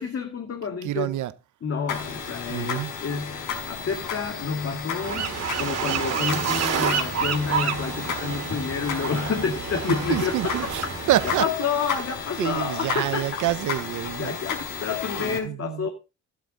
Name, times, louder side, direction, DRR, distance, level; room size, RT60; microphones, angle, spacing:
voice 1, 0.0-1.1 1.6-10.7 11.4-13.5 14.2-15.9, left 5 dB, 50° left, 2.3 m, -29 dB
voice 2, 0.8-1.3 2.5-2.9 9.9-11.4 12.4-14.4 15.2-15.9, right 13 dB, 75° right, 1.1 m, -27 dB
sound 1, 1.9-15.4, left 6 dB, 90° left, 5.8 m, -33 dB
sound 2, 5.0-11.4, right 7 dB, 60° right, 2.4 m, -29 dB
13.0 x 11.5 x 4.0 m
cardioid pair, 90°, 30 cm